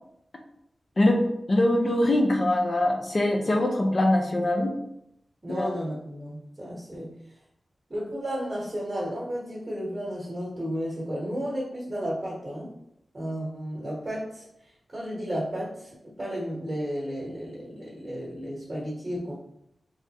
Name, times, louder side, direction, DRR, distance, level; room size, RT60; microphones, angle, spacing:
voice 1, 1.0-4.8 5.5-5.7, left 1 dB, 40° left, 2 dB, 0.6 m, -23 dB
voice 2, 5.4-7.1 7.9-12.7 13.1-14.4 14.9-19.3, equal, 30° right, -6 dB, 1.3 m, -33 dB
3.6 x 3.1 x 2.9 m, 0.78 s
wide cardioid pair, 100°, 0 cm